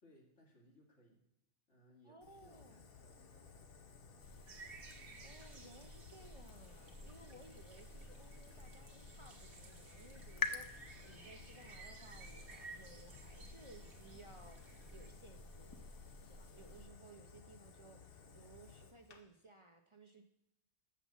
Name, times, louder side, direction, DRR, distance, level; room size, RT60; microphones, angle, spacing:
voice 1, 0.0-1.2 1.7-3.7 7.3-7.5, equal, 85° left, -2 dB, 2.5 m, -66 dB
voice 2, 2.0-2.8 5.2-15.8 16.2-20.2, right 2 dB, 35° right, 4 dB, 0.6 m, -60 dB
Fire, 2.2-19.2, left 5 dB, 55° left, 1.0 m, -59 dB
sound 1, 4.2-16.9, left 3 dB, 35° left, 0.3 m, -50 dB
sound 2, 4.5-15.1, right 3 dB, 70° right, 1.4 m, -57 dB
7.4 x 5.8 x 7.1 m, 0.81 s
omnidirectional pair, 1.2 m